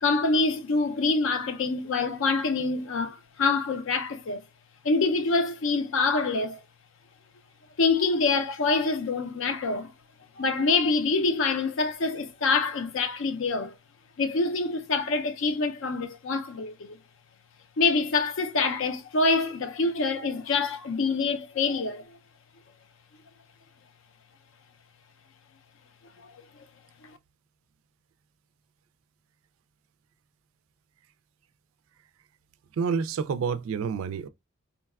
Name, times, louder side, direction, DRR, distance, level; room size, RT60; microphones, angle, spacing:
voice 1, 0.0-4.4 4.8-6.6 7.8-9.9 10.4-13.7 14.2-17.0 17.8-22.0, left 3 dB, 65° left, 0.5 m, -26 dB
voice 2, 32.7-34.3, right 6 dB, 70° right, 0.3 m, -28 dB
3.9 x 2.2 x 2.3 m
head